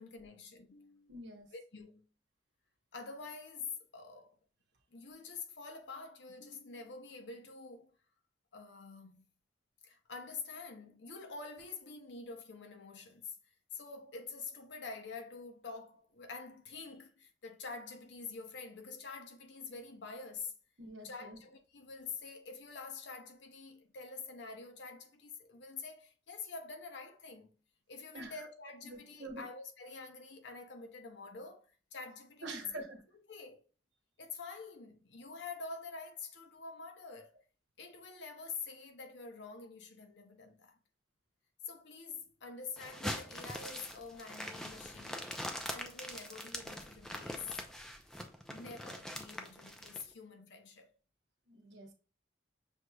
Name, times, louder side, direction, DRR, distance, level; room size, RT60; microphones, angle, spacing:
voice 1, 0.0-1.2 1.5-2.1 2.9-4.4 4.9-7.9 8.5-9.2 9.8-13.4 13.7-20.5 21.0-27.5 27.9-32.7 33.3-33.6 34.2-37.4 37.8-40.8 41.6-45.4 45.7-47.6 48.5-50.9, left 4 dB, 70° left, 0.8 m, -47 dB
voice 2, 1.1-1.5 20.8-21.4 28.1-28.3 28.8-29.4 32.4-33.0 51.5-51.9, right 2 dB, 70° right, 1.0 m, -46 dB
sound 1, 42.8-50.0, equal, 5° left, 0.4 m, -43 dB
6.3 x 3.0 x 2.3 m
head